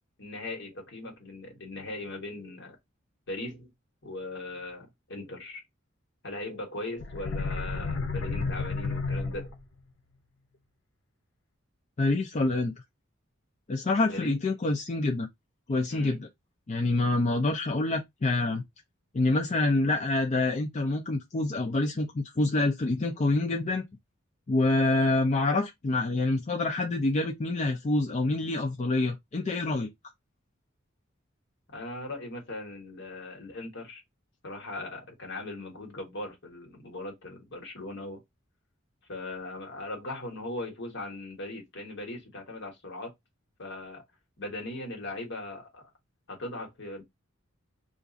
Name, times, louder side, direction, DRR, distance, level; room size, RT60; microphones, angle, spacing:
voice 1, 0.2-2.8 3.3-3.7 4.0-5.6 6.2-9.5 14.0-14.3 15.9-16.2 31.7-34.0 34.4-38.2 39.1-43.1 43.6-44.0 44.4-45.8 46.3-47.0, left 2 dB, 60° left, 1.3 m, -39 dB
sound 1, 7.0-9.8, left 3 dB, 90° left, 0.8 m, -31 dB
voice 2, 12.0-12.7 13.7-15.3 15.7-16.3 16.7-18.6 19.1-23.8 24.5-29.9, left 2 dB, 35° left, 0.4 m, -26 dB
2.5 x 2.4 x 3.8 m
head